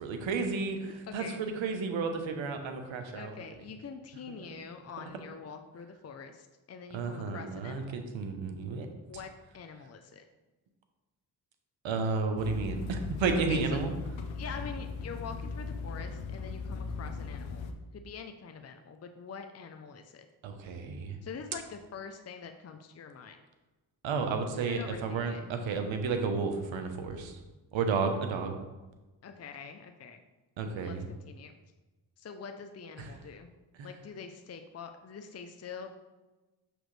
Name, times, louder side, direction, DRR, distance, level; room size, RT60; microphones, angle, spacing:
voice 1, 0.0-3.3 6.9-8.9 11.8-13.9 20.4-21.2 24.0-27.4 27.7-28.6 30.6-31.1 33.0-33.1 33.8-33.9, right 4 dB, 80° right, 6 dB, 1.0 m, -32 dB
voice 2, 1.0-1.4 3.1-8.0 9.1-10.3 13.5-13.8 14.3-17.6 17.9-20.3 21.2-23.4 24.6-25.5 29.2-30.2 30.8-31.5 32.2-33.5 33.8-35.9, left 6 dB, 35° left, 6 dB, 0.6 m, -45 dB
sound 1, 12.4-17.7, left 4 dB, 75° left, 0.8 m, -38 dB
6.3 x 6.2 x 3.2 m, 1.1 s
cardioid pair, 55°, 46 cm